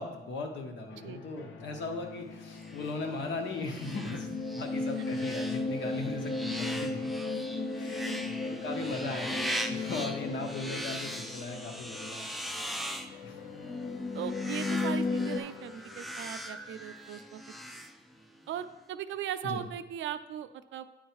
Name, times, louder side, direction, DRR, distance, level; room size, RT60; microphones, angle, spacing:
voice 1, 0.0-7.0 7.7-9.4 9.7-12.4 13.1-13.4 19.4-19.6, left 3 dB, 65° left, 3 dB, 1.3 m, -38 dB
sound 1, 0.9-17.6, left 6 dB, 85° left, 0.9 m, -49 dB
sound 2, 2.5-18.5, equal, ahead, 0.5 m, -41 dB
sound 3, 3.8-12.2 12.5-12.6 13.6-15.4, left 3 dB, 40° left, 0.7 m, -35 dB
voice 2, 14.1-17.4 18.5-20.9, right 10 dB, 70° right, 11 dB, 0.5 m, -38 dB
9.0 x 4.6 x 4.6 m, 1.1 s
cardioid pair, 90°, 20 cm